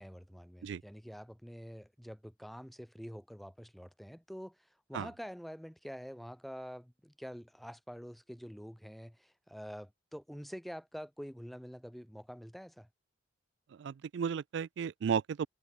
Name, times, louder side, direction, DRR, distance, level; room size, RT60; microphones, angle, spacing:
voice 1, 0.0-12.9, equal, ahead, 1.0 m, -47 dB
voice 2, 13.7-15.5, right 7 dB, 65° right, 0.3 m, -34 dB
head